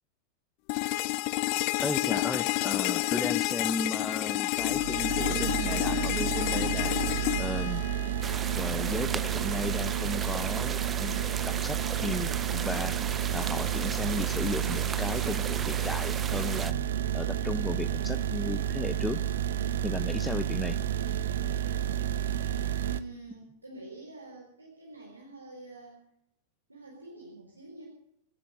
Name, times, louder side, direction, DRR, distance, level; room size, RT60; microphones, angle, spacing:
sound 1, 0.7-8.7, left 21 dB, 45° left, 0.5 m, -29 dB
voice 1, 1.8-7.0 7.4-7.8 8.6-13.0 13.3-16.8 17.1-19.2 19.8-20.8, left 3 dB, 10° left, 10 dB, 0.8 m, -35 dB
Closed Store Closed Café, 4.6-23.0, right 10 dB, 60° right, 0.7 m, -31 dB
sound 2, 8.2-16.7, right 6 dB, 20° right, 0.5 m, -37 dB
voice 2, 22.8-26.0 26.7-27.9, right 3 dB, 85° right, -1 dB, 4.1 m, -47 dB
25.0 x 8.6 x 6.5 m, 0.74 s
figure-of-eight pair, 90°, 0 cm